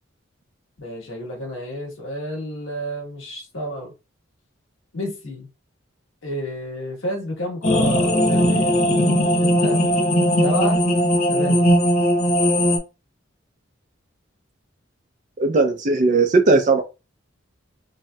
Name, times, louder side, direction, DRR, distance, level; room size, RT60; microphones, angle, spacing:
voice 1, 0.8-3.9 4.9-5.5 6.2-8.8 9.4-9.8 10.4-10.9 11.3-11.7, equal, 70° left, 1.3 m, -30 dB
sound 1, 7.6-12.8, equal, 40° left, 0.7 m, -18 dB
voice 2, 15.4-16.8, right 3 dB, 40° right, 0.5 m, -17 dB
3.0 x 2.7 x 2.2 m
head